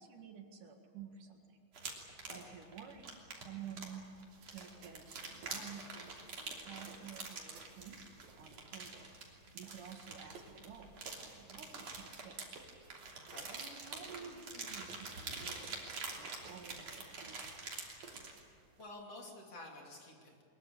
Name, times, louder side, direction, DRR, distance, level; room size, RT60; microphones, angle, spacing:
voice 1, 0.0-1.7 2.0-4.0 4.5-8.0 8.4-12.6 13.5-17.5, right 7 dB, 70° right, 4 dB, 3.4 m, -52 dB
sound 1, 1.7-18.4, right 4 dB, 50° right, 4.1 m, -46 dB
sound 2, 4.0-18.8, right 4 dB, 90° right, 4.0 m, -60 dB
voice 2, 13.2-13.5 18.8-20.4, left 2 dB, 45° left, 0 dB, 3.8 m, -51 dB
23.0 x 21.5 x 8.6 m, 2.1 s
omnidirectional pair, 3.9 m